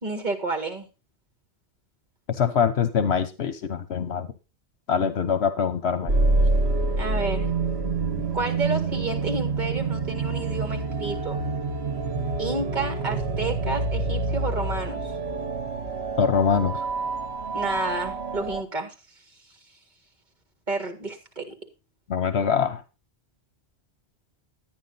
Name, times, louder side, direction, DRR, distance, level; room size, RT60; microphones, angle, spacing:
voice 1, 0.0-0.9 7.0-7.5 8.3-11.4 12.4-15.0 17.5-18.9 20.7-21.5, right 3 dB, 45° right, 5 dB, 2.1 m, -30 dB
voice 2, 2.4-4.3 4.9-6.1 16.2-16.7 22.1-22.8, left 7 dB, 75° left, 11 dB, 1.1 m, -23 dB
sound 1, 6.1-18.6, right 3 dB, 65° right, 1.4 m, -27 dB
11.0 x 9.2 x 4.0 m, 0.29 s
omnidirectional pair, 1.1 m